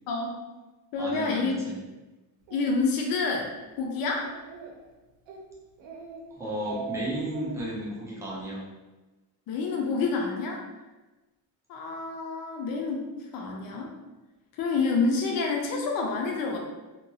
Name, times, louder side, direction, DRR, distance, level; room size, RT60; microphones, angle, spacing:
voice 1, 0.1-0.4 0.9-1.6 2.5-4.3 9.5-10.6 11.7-13.1 13.3-13.9 14.5-16.6, left 4 dB, 50° left, 0 dB, 0.5 m, -28 dB
voice 2, 1.0-1.8 6.3-8.7, right 1 dB, 5° right, -6 dB, 0.4 m, -33 dB
Speech, 2.5-2.6 3.1-3.4 3.8-3.9 4.2-4.8 5.3-5.4 5.8-6.2 6.5-7.5, right 5 dB, 80° right, 0.7 m, -41 dB
2.9 x 2.2 x 2.7 m, 1.1 s
cardioid pair, 175°, 44 cm